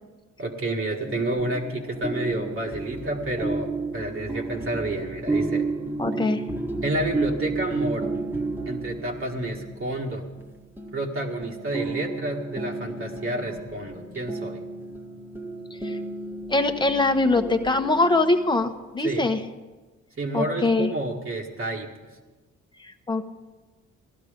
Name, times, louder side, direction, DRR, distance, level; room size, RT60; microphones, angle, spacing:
voice 1, 0.4-5.7 6.8-8.1 8.7-10.2 10.9-14.6 19.0-19.3 20.2-21.9, right 1 dB, 45° right, -1 dB, 1.9 m, -29 dB
sound 1, 1.1-19.0, right 3 dB, 5° right, 1.5 m, -32 dB
voice 2, 6.0-6.4 15.7-16.0 16.5-19.4 20.3-20.9 22.8-23.2, left 2 dB, 15° left, 6 dB, 1.1 m, -23 dB
17.0 x 12.0 x 5.1 m, 1.2 s
cardioid pair, 90°, 30 cm